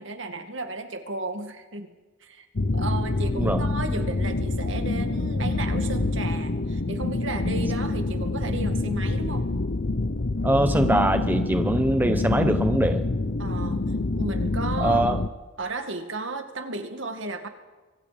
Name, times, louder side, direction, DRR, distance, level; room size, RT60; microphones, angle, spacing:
voice 1, 0.0-1.9 2.2-2.5 2.7-9.5 13.4-13.8 14.2-15.1 15.6-17.5, right 2 dB, 65° right, 6 dB, 2.1 m, -34 dB
sound 1, 2.6-15.3, left 2 dB, 55° left, 0.8 m, -26 dB
voice 2, 10.4-13.0 14.8-15.2, right 1 dB, 10° right, 7 dB, 0.9 m, -22 dB
26.0 x 24.0 x 5.2 m, 1.3 s
head